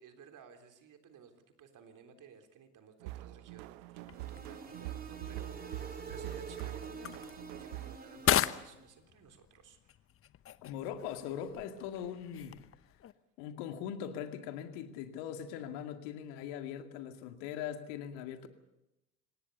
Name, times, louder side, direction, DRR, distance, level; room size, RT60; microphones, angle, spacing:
voice 1, 0.0-7.3 7.6-9.9, right 7 dB, 40° right, 6 dB, 3.7 m, -56 dB
sound 1, 3.0-8.0, right 16 dB, 60° right, 1.1 m, -44 dB
sound 2, 3.9-13.1, left 11 dB, 30° left, 0.9 m, -38 dB
sound 3, 4.1-8.9, right 4 dB, 20° right, 3.6 m, -47 dB
voice 2, 10.6-12.6 13.4-18.5, left 9 dB, 55° left, 7 dB, 2.3 m, -41 dB
26.0 x 18.5 x 6.9 m, 0.91 s
figure-of-eight pair, 75°, 48 cm